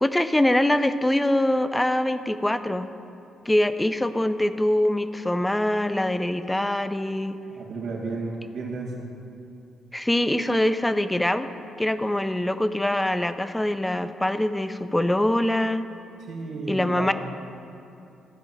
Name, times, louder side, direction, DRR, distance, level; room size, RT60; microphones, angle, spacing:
voice 1, 0.0-2.9 3.5-7.4 9.9-11.5 11.8-15.8 16.7-17.1, left 1 dB, 10° left, 11 dB, 0.5 m, -23 dB
voice 2, 7.5-9.1 16.2-17.1, right 3 dB, 75° right, -4 dB, 2.0 m, -33 dB
13.0 x 5.3 x 7.6 m, 2.7 s
cardioid pair, 90°, 0 cm